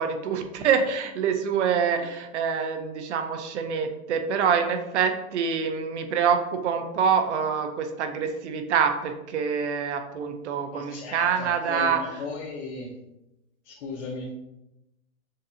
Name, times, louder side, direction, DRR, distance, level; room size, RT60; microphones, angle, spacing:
voice 1, 0.0-12.2, right 6 dB, 55° right, 7 dB, 0.6 m, -26 dB
voice 2, 10.7-12.9 13.6-14.3, left 4 dB, 50° left, -2 dB, 0.7 m, -36 dB
6.5 x 2.6 x 2.7 m, 0.93 s
hypercardioid pair, 155°, 42 cm